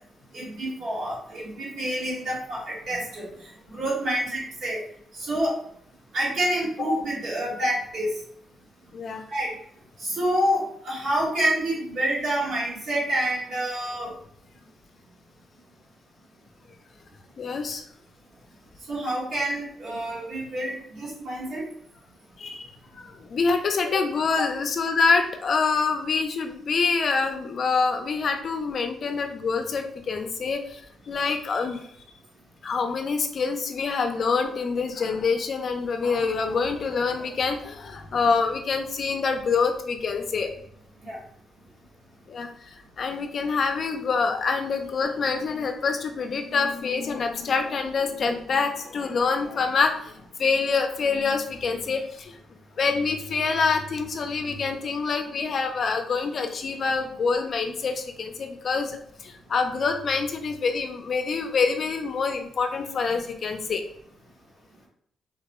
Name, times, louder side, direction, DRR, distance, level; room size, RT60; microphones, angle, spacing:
voice 1, 0.3-3.3 3.7-4.8 5.1-5.6 6.1-8.1 9.3-9.5 10.0-14.1 18.9-21.6 41.0-41.2, right 1 dB, 75° right, -8 dB, 1.5 m, -27 dB
voice 2, 8.9-9.2 17.4-17.8 22.4-30.8 31.1-31.8 32.6-40.5 42.3-52.4 52.8-63.8, left 4 dB, 50° left, 5 dB, 0.4 m, -26 dB
3.8 x 2.2 x 2.9 m, 0.66 s
cardioid pair, 110°, 0 cm